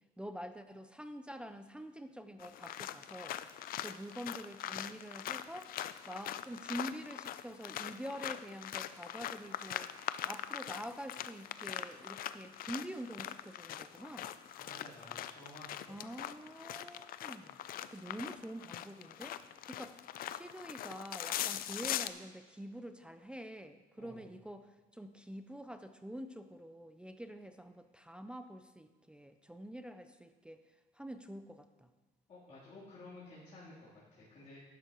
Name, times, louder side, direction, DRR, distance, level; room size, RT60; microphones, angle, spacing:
voice 1, 0.2-3.4 3.8-5.7 6.1-9.9 10.2-14.3 15.9-17.6 17.9-19.4 19.7-20.0 20.3-30.6 30.9-31.9, equal, 5° right, 8 dB, 0.5 m, -46 dB
sound 1, 2.4-22.1, left 11 dB, 60° left, 0.5 m, -42 dB
voice 2, 14.6-16.0 24.0-24.3 32.3-34.6, left 2 dB, 40° left, -11 dB, 3.5 m, -53 dB
11.5 x 11.0 x 3.0 m, 1.3 s
cardioid pair, 110°, 17 cm